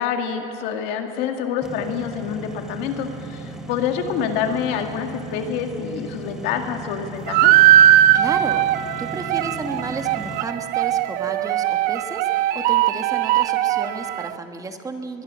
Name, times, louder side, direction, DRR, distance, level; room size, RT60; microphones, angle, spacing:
voice 1, 0.0-7.5, left 7 dB, 70° left, 5 dB, 2.1 m, -27 dB
sound 1, 1.6-10.4, right 3 dB, 5° right, 1.6 m, -37 dB
sound 2, 7.3-14.3, right 12 dB, 65° right, 0.6 m, -19 dB
voice 2, 8.1-15.2, right 3 dB, 20° right, 6 dB, 1.5 m, -33 dB
21.5 x 21.5 x 6.3 m, 2.9 s
supercardioid pair, 115°, 17 cm